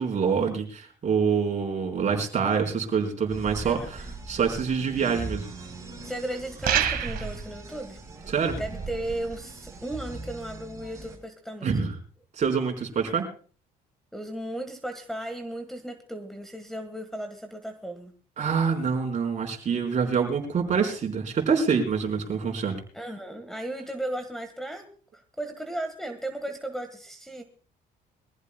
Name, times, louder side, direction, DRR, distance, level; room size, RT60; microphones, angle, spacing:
voice 1, 0.0-5.4 8.3-8.6 11.6-11.9 12.4-13.3 18.4-22.8, right 6 dB, 45° right, 2 dB, 4.4 m, -26 dB
sound 1, 3.3-11.2, right 3 dB, 20° right, 6.6 m, -39 dB
voice 2, 6.0-8.0 8.6-11.7 14.1-18.2 22.9-24.9 25.4-27.4, right 1 dB, ahead, 3 dB, 1.7 m, -35 dB
sound 2, 6.6-7.4, right 10 dB, 60° right, 2.0 m, -25 dB
23.5 x 15.0 x 2.3 m, 0.41 s
cardioid pair, 110°, 17 cm